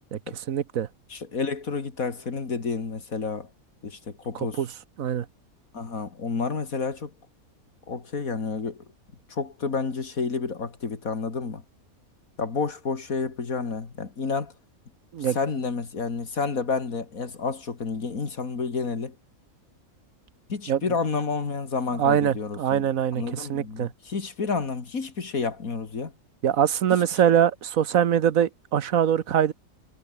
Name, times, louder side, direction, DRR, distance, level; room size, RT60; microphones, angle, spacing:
voice 1, 0.5-0.9 4.3-4.7 5.0-5.2 15.1-15.4 20.7-20.8 22.0-23.9 26.4-29.5, right 9 dB, 70° right, 1.4 m, -23 dB
voice 2, 1.1-3.5 3.8-4.6 5.7-7.1 7.9-8.8 9.3-11.6 12.4-14.5 15.3-19.2 20.5-26.1, left 4 dB, 70° left, 2.8 m, -30 dB
omnidirectional pair, 1.5 m